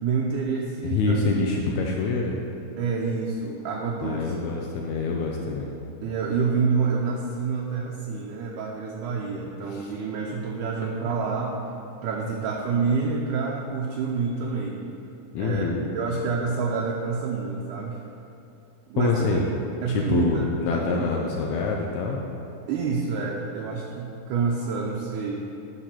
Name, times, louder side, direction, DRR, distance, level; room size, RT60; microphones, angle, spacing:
voice 1, 0.0-1.5 2.8-4.4 6.0-11.5 12.0-14.8 15.4-18.0 18.9-19.4 19.8-21.1 22.7-25.4, right 5 dB, 75° right, -1 dB, 1.9 m, -28 dB
voice 2, 0.8-2.3 4.0-5.7 9.7-9.9 11.0-11.1 15.3-15.9 19.0-19.5 19.9-22.2, left 4 dB, 85° left, 0 dB, 1.6 m, -26 dB
11.5 x 4.0 x 5.9 m, 2.7 s
omnidirectional pair, 4.1 m